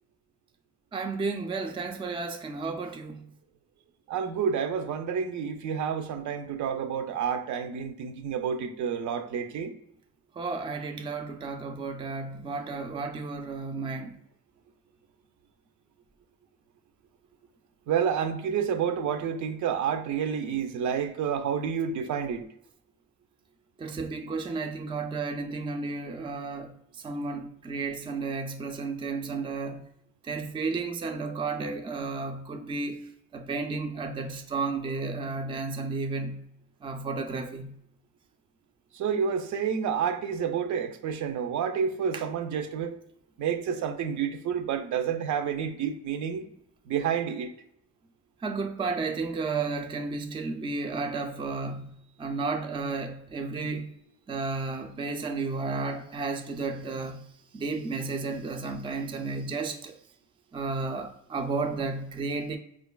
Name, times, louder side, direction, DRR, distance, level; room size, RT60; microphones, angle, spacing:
voice 1, 0.9-3.2 10.4-14.1 23.8-26.7 27.0-29.8 30.2-33.0 33.3-36.4 36.8-37.7 42.1-42.2 48.4-53.9 54.3-57.3 57.5-59.9 60.5-62.6, right 4 dB, 20° right, 0.3 m, -32 dB
voice 2, 4.1-9.7 17.9-22.4 38.9-42.9 43.4-46.5 46.9-47.5, right 7 dB, 75° right, 0.5 m, -29 dB
4.5 x 2.3 x 2.2 m
cardioid pair, 90°, 30 cm